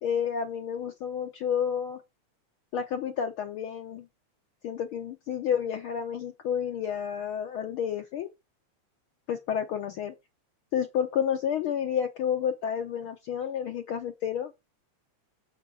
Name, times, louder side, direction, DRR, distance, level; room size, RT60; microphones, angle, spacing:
voice 1, 0.0-2.0 2.7-4.1 4.6-8.3 9.3-10.1 10.7-14.5, left 8 dB, 80° left, 1.1 m, -30 dB
6.6 x 5.5 x 6.9 m
omnidirectional pair, 3.5 m